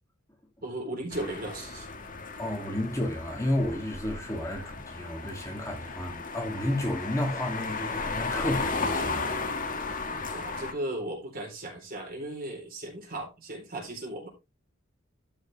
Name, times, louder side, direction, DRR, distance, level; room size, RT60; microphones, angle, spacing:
voice 1, 0.6-1.9 10.3-14.3, right 1 dB, 45° right, 4.0 m, -36 dB
sound 1, 1.1-10.7, left 3 dB, 40° left, 1.8 m, -35 dB
voice 2, 2.4-9.4, left 1 dB, 15° left, 2.6 m, -32 dB
13.0 x 6.4 x 3.4 m
head